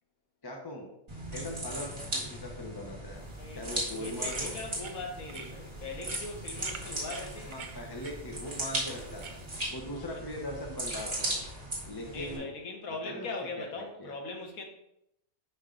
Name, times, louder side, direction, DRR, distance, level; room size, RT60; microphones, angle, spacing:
voice 1, 0.4-0.9 1.3-3.2 3.6-4.5 7.5-9.4 9.7-11.4 11.8-12.5 13.0-13.7 14.0-14.2, left 1 dB, 25° left, 1 dB, 0.6 m, -40 dB
sound 1, 1.1-12.4, right 1 dB, 30° right, 1.7 m, -38 dB
sound 2, 3.1-9.7, right 6 dB, 60° right, 0.5 m, -49 dB
voice 2, 3.3-7.7 9.9-10.2 12.1-14.7, left 3 dB, 85° left, 2 dB, 1.5 m, -40 dB
5.4 x 5.3 x 3.8 m, 0.81 s
omnidirectional pair, 1.4 m